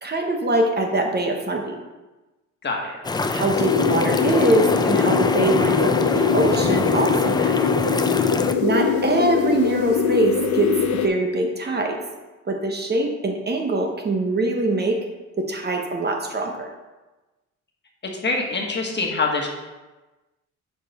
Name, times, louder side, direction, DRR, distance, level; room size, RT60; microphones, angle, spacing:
voice 1, 0.0-1.7 3.3-7.7 8.6-10.7 11.0-12.0 12.5-15.0 15.4-16.7, right 2 dB, 35° right, 2 dB, 1.0 m, -23 dB
voice 2, 2.6-2.9 18.2-19.5, left 3 dB, 35° left, 1 dB, 1.4 m, -24 dB
sound 1, 3.0-8.5, left 3 dB, 15° left, 0.4 m, -24 dB
sound 2, 3.5-11.1, left 7 dB, 75° left, 0.7 m, -22 dB
6.5 x 5.0 x 4.2 m, 1.1 s
cardioid pair, 90°, 30 cm